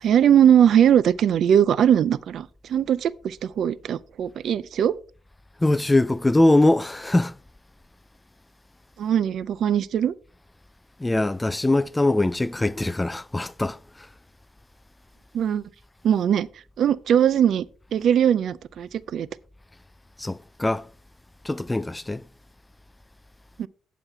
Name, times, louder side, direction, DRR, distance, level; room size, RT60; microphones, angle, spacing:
voice 1, 0.0-5.0 9.0-10.1 15.3-15.6 16.0-16.5 16.8-17.7 17.9-19.3 23.6-23.7, right 9 dB, 65° right, 0.4 m, -20 dB
voice 2, 5.6-7.4 11.0-14.1 20.2-20.9 21.4-22.2, left 2 dB, 15° left, 0.3 m, -22 dB
10.0 x 5.8 x 4.5 m
cardioid pair, 90°, 0 cm